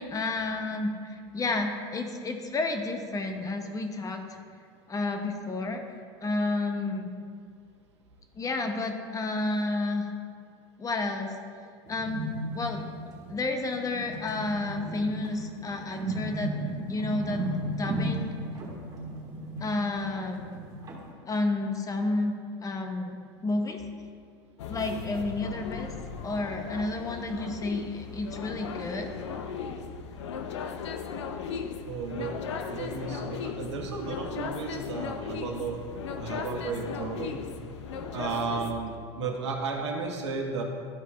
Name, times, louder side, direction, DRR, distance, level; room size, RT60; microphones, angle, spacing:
voice 1, 0.0-4.2 4.9-5.8 6.2-7.1 8.3-10.1 10.8-11.3 11.9-12.2 12.5-12.8 13.3-16.5 16.9-17.4 17.8-18.3 19.6-20.5 21.3-22.3 22.6-23.2 23.4-23.8 24.7-25.9 26.2-29.1, left 2 dB, 25° left, 5 dB, 0.9 m, -31 dB
sound 1, 11.8-21.1, right 1 dB, 25° right, 2.0 m, -35 dB
sound 2, 24.6-38.7, left 6 dB, 85° left, 0.6 m, -37 dB
voice 2, 31.8-35.8 36.2-37.4 38.1-40.6, right 4 dB, 85° right, 2 dB, 1.2 m, -34 dB
12.0 x 4.7 x 3.4 m, 2.1 s
hypercardioid pair, 95°, 14 cm